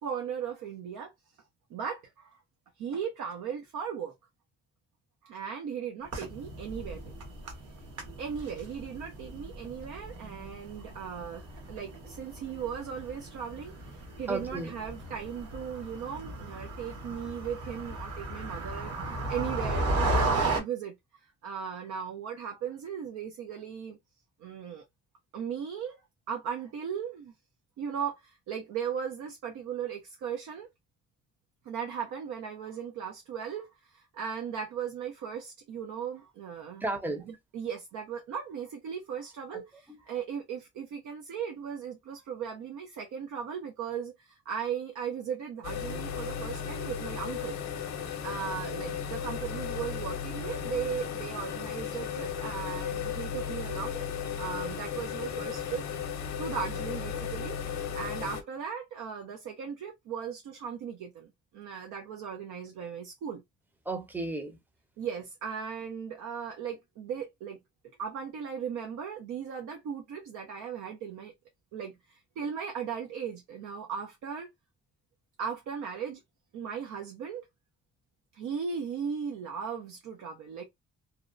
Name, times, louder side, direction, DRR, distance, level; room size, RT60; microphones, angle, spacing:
voice 1, 0.0-1.1 1.7-2.4 2.8-4.1 5.2-7.1 8.2-18.9 19.3-20.9 21.2-24.0 24.4-24.8 25.3-26.0 26.3-27.3 27.8-30.7 31.6-36.8 37.5-47.6 48.2-54.0 54.4-55.8 56.4-63.4 65.0-67.6 68.0-71.3 71.7-74.5 75.4-76.2 76.5-77.5 78.3-80.6, right 7 dB, 80° right, 0.6 m, -37 dB
sound 1, 6.0-20.6, right 2 dB, 55° right, 1.0 m, -35 dB
voice 2, 14.3-14.7 36.8-37.3 39.5-39.6 63.8-64.6, right 2 dB, 5° right, 0.6 m, -33 dB
sound 2, 45.6-58.4, left 7 dB, 65° left, 0.6 m, -35 dB
2.7 x 2.1 x 2.4 m
cardioid pair, 90°, 30 cm